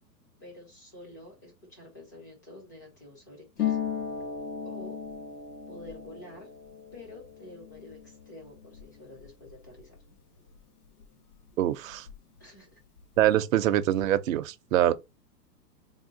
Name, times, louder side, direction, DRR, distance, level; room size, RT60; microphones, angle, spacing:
voice 1, 0.4-3.8 4.6-5.0 5.7-6.5 6.9-10.0 12.4-12.8, left 1 dB, 15° left, 0.4 m, -48 dB
Harp, 3.6-11.1 11.3-12.4 12.7-13.3, left 8 dB, 65° left, 1.1 m, -37 dB
voice 2, 11.6-12.1 13.2-14.9, right 12 dB, 55° right, 0.5 m, -24 dB
3.6 x 2.3 x 3.7 m
hypercardioid pair, 155°, 50 cm